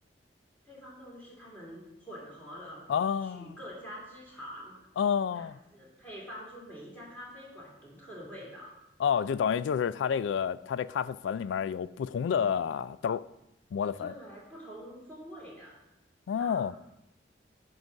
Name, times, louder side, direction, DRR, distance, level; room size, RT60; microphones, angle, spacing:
voice 1, 0.6-2.9 3.2-4.7 5.3-8.7 14.0-15.8 16.4-16.8, equal, 10° left, 2.9 m, -46 dB
voice 2, 2.9-3.6 5.0-5.6 9.0-13.3 13.7-14.1 16.3-16.7, left 7 dB, 90° left, 0.3 m, -29 dB
9.5 x 4.0 x 6.1 m
head